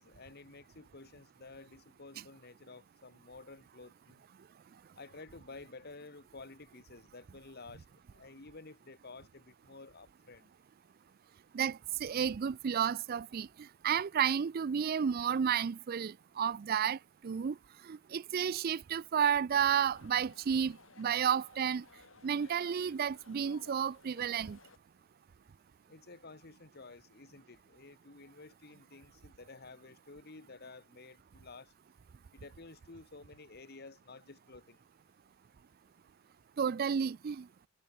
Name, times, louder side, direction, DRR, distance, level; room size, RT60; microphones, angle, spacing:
voice 1, 0.0-4.2 5.0-10.5 25.9-31.7 32.3-34.8, left 3 dB, 50° left, 1.4 m, -52 dB
voice 2, 11.5-17.6 17.9-21.8 22.2-24.6 36.6-37.5, right 8 dB, 45° right, 0.4 m, -32 dB
sound 1, 19.7-24.8, left 4 dB, 65° left, 1.8 m, -59 dB
head